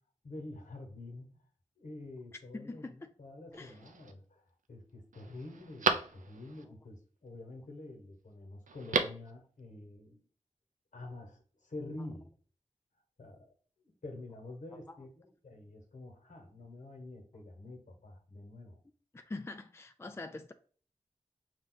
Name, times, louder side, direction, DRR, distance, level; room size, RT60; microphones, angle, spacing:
voice 1, 0.2-1.4 1.8-4.4 4.7-10.2 10.9-12.3 13.2-13.5 13.8-18.8, left 2 dB, 75° left, 1.2 m, -47 dB
voice 2, 2.5-3.1 3.5-3.8 14.9-15.0 19.1-20.5, left 2 dB, 20° left, 0.4 m, -44 dB
Telephone, 3.5-4.1 4.6-4.7 5.1-6.6 8.7-9.3 9.6-9.7, right 4 dB, 85° right, 0.5 m, -34 dB
5.3 x 2.4 x 3.9 m
cardioid pair, 50°, 13 cm